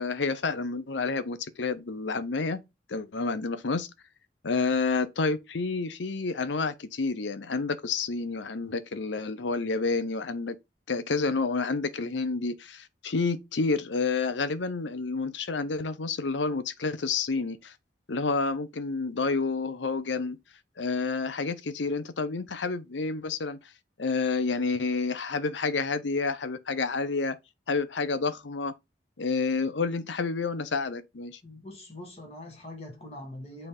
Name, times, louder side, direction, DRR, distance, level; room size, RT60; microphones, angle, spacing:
voice 1, 0.0-2.6 2.9-3.9 4.4-10.6 10.9-17.7 18.1-20.4 20.8-23.6 24.0-27.4 27.7-28.7 29.2-31.4, left 4 dB, 85° left, 0.8 m, -29 dB
voice 2, 31.4-33.7, left 1 dB, 35° left, 2.4 m, -43 dB
6.8 x 3.5 x 5.3 m
head